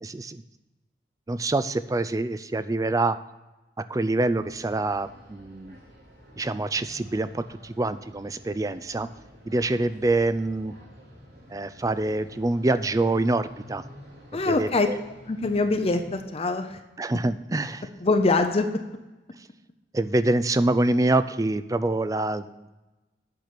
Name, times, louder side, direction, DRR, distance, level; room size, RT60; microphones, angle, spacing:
voice 1, 0.0-0.4 1.3-3.2 3.9-5.8 6.4-9.1 9.5-10.7 11.5-13.8 14.5-15.0 17.0-17.9 19.9-22.6, right 2 dB, 20° right, 13 dB, 0.4 m, -25 dB
sound 1, 4.4-16.2, equal, 60° right, 3.9 m, -49 dB
voice 2, 14.3-14.9 15.3-16.8 18.0-18.7, left 3 dB, 35° left, 7 dB, 0.6 m, -23 dB
9.4 x 5.9 x 6.7 m, 1.1 s
head